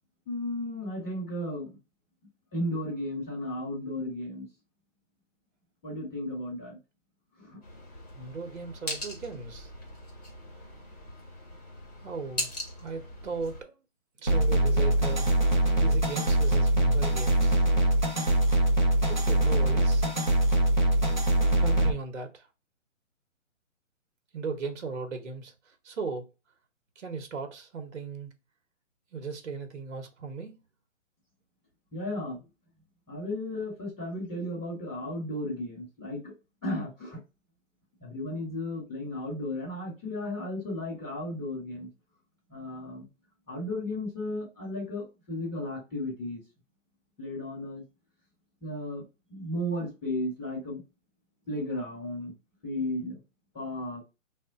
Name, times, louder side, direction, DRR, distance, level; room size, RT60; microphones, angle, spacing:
voice 1, 0.3-1.7 2.5-4.4 5.8-6.8 7.4-7.6 31.9-32.4 33.1-36.3 36.6-37.2 38.0-41.9 42.5-43.1 43.5-46.4 47.2-47.8 48.6-49.0 49.3-50.8 51.5-52.3 52.6-53.2 53.5-54.0, left 1 dB, ahead, 0.7 m, -34 dB
sound 1, 7.6-13.6, left 1 dB, 30° left, 0.9 m, -40 dB
voice 2, 8.1-9.7 12.0-12.5 12.8-13.7 14.2-15.3 15.8-17.6 19.1-20.1 21.6-22.4 24.3-25.5 25.8-26.3 27.0-28.3 29.1-30.6, right 4 dB, 60° right, 0.9 m, -37 dB
sound 2, 14.3-21.9, right 1 dB, 40° right, 0.4 m, -23 dB
3.2 x 2.1 x 3.9 m
hypercardioid pair, 175°, 39 cm